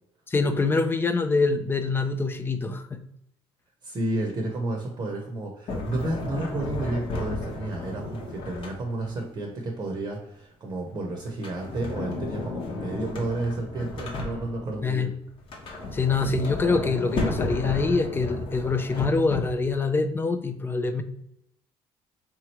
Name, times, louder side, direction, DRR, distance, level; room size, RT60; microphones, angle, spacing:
voice 1, 0.3-3.0 14.8-15.1 15.9-21.0, left 4 dB, 20° left, 8 dB, 0.4 m, -25 dB
voice 2, 3.8-15.1, right 2 dB, 35° right, 1 dB, 0.8 m, -31 dB
Sliding door, 5.7-9.2 11.3-14.8 15.4-19.7, left 2 dB, 55° left, 0.9 m, -33 dB
3.6 x 3.0 x 2.9 m, 0.77 s
cardioid pair, 105°, 11 cm